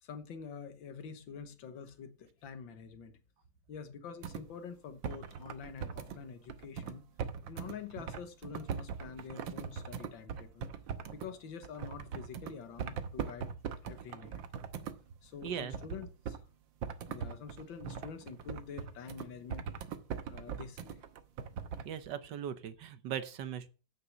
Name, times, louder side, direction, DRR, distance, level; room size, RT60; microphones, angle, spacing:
voice 1, 0.0-3.2 3.7-7.0 7.5-10.7 11.1-13.6 13.8-14.4 15.2-16.4 17.1-19.7 20.3-21.1, left 6 dB, 85° left, 1.9 m, -47 dB
sound 1, 4.2-4.4 5.0-6.2 6.5-11.3 11.6-12.5 12.8-15.0 15.4-16.4 16.8-21.9, right 7 dB, 85° right, 1.7 m, -40 dB
voice 2, 15.4-15.7 21.8-23.7, right 9 dB, 70° right, 1.6 m, -39 dB
9.6 x 6.8 x 7.0 m
omnidirectional pair, 2.0 m